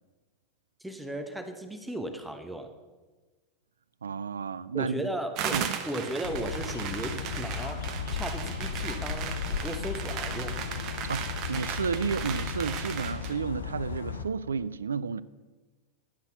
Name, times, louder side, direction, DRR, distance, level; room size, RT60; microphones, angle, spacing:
voice 1, 0.8-2.7 4.7-10.6, right 1 dB, 5° right, 1.0 m, -36 dB
voice 2, 4.0-5.1 5.5-5.7 11.1-15.2, right 5 dB, 80° right, 0.3 m, -32 dB
sound 1, 5.4-13.4, right 8 dB, 45° right, 0.9 m, -36 dB
sound 2, 6.2-14.2, left 6 dB, 80° left, 0.6 m, -35 dB
10.5 x 5.9 x 5.8 m
figure-of-eight pair, 90°, 0 cm